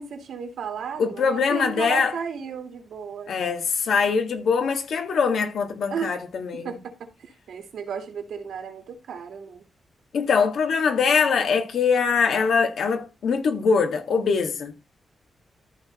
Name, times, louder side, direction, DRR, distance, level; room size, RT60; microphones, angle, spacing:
voice 1, 0.0-3.4 5.9-6.2 6.5-9.6, right 7 dB, 85° right, 2.5 m, -34 dB
voice 2, 1.0-2.1 3.3-6.7 10.1-14.7, left 5 dB, 70° left, 1.8 m, -22 dB
13.5 x 4.7 x 4.2 m
wide cardioid pair, 170°, 0 cm